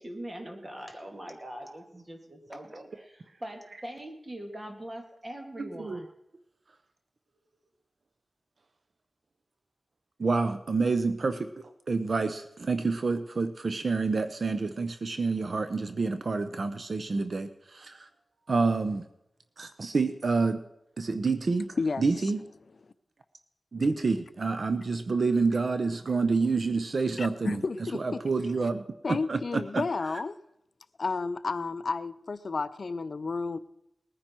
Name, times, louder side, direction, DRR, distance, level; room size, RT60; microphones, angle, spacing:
voice 1, 0.0-6.2, right 1 dB, 30° right, 3 dB, 2.3 m, -42 dB
voice 2, 10.2-18.1 18.5-19.0 19.6-20.6 21.0-22.4 23.7-27.6 27.9-28.8 29.1-29.8, right 4 dB, 60° right, 9 dB, 0.7 m, -28 dB
voice 3, 21.8-22.3 27.2-28.2 29.0-30.4 31.0-33.6, left 4 dB, 60° left, 13 dB, 0.5 m, -32 dB
20.0 x 9.9 x 4.5 m, 0.82 s
wide cardioid pair, 90°, 0 cm